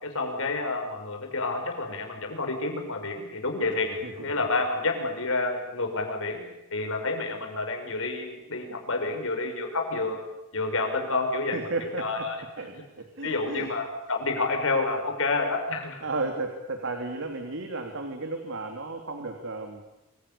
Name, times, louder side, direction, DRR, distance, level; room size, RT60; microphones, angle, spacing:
voice 1, 0.0-10.2 10.5-12.4 13.2-16.1, left 3 dB, 65° left, 4 dB, 6.0 m, -29 dB
voice 2, 11.5-12.3 12.6-13.7 16.0-19.8, right 3 dB, 60° right, 4 dB, 3.1 m, -33 dB
27.0 x 26.0 x 7.0 m, 0.93 s
head